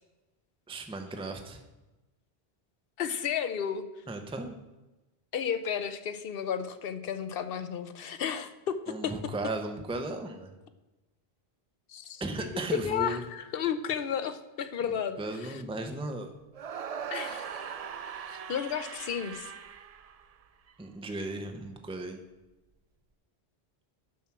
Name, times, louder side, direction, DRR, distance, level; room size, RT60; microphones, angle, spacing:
voice 1, 0.7-1.6 4.1-4.5 8.9-10.5 12.2-13.2 14.9-16.3 20.8-22.2, right 2 dB, 5° right, 5 dB, 0.7 m, -36 dB
voice 2, 3.0-3.9 5.3-9.3 11.9-15.6 17.1-17.7 18.3-19.5, left 8 dB, 65° left, 10 dB, 0.8 m, -33 dB
sound 1, 16.5-20.7, right 7 dB, 50° right, 0.4 m, -40 dB
7.3 x 6.0 x 5.9 m, 1.1 s
omnidirectional pair, 1.1 m